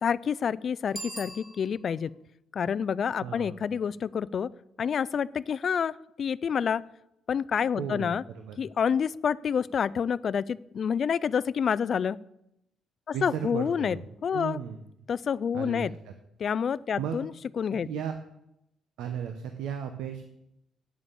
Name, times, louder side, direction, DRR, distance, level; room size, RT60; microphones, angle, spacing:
voice 1, 0.0-2.1 2.5-4.5 4.8-6.8 7.3-8.2 8.6-12.2 13.1-14.0 14.2-14.6 15.1-15.9 16.4-17.3 17.6-17.9, left 7 dB, 45° left, 20 dB, 0.3 m, -28 dB
Bicycle bell, 0.9-2.1, right 2 dB, 5° right, 3.3 m, -42 dB
voice 2, 3.2-3.6 7.8-8.6 13.1-14.8 15.5-16.1 17.0-17.2 17.7-18.2 19.0-20.2, right 8 dB, 90° right, 6 dB, 0.9 m, -35 dB
8.6 x 7.2 x 6.9 m, 0.81 s
cardioid pair, 130°, 0 cm